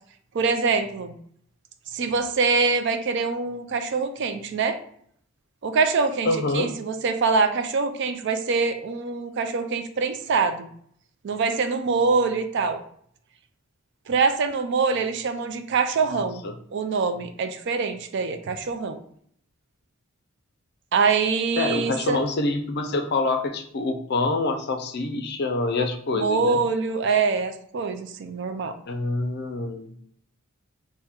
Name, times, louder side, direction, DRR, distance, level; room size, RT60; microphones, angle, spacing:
voice 1, 0.3-1.1 1.9-4.8 5.6-10.7 11.2-12.8 14.1-16.4 16.7-19.0 20.9-22.2 26.1-28.7, right 4 dB, 55° right, 8 dB, 0.4 m, -24 dB
voice 2, 6.2-6.7 16.1-16.5 21.6-26.6 28.9-29.9, left 2 dB, 50° left, 6 dB, 0.4 m, -26 dB
3.5 x 2.1 x 4.3 m, 0.64 s
head